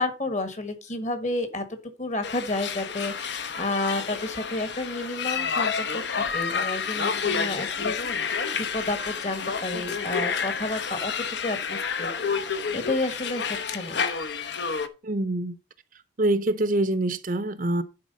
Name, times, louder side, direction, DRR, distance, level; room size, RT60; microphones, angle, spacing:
voice 1, 0.0-12.1 12.5-14.0, left 2 dB, 35° left, 1.4 m, -31 dB
sound 1, 2.2-14.9, left 6 dB, 65° left, 0.9 m, -29 dB
voice 2, 15.0-15.6 16.2-17.8, right 1 dB, 45° right, 0.7 m, -25 dB
10.5 x 4.4 x 5.4 m
head